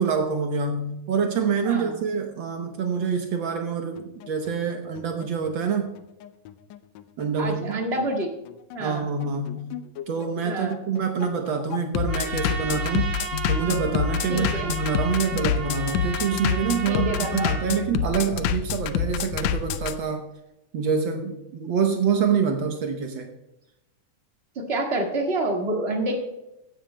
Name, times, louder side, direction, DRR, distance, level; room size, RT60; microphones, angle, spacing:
voice 1, 0.0-5.9 7.2-7.8 8.8-9.7 10.1-13.1 13.5-20.2 20.7-23.3, right 6 dB, 85° right, 4 dB, 1.0 m, -26 dB
voice 2, 1.6-1.9 7.4-8.3 8.7-9.1 10.5-10.8 14.3-14.7 16.9-17.5 24.5-26.2, right 1 dB, 25° right, 0 dB, 1.5 m, -28 dB
Bass drum, 4.0-19.9, left 9 dB, 75° left, 1.7 m, -27 dB
Trumpet, 12.1-17.8, right 6 dB, 45° right, 2.1 m, -34 dB
15.5 x 11.0 x 2.2 m, 0.90 s
omnidirectional pair, 3.3 m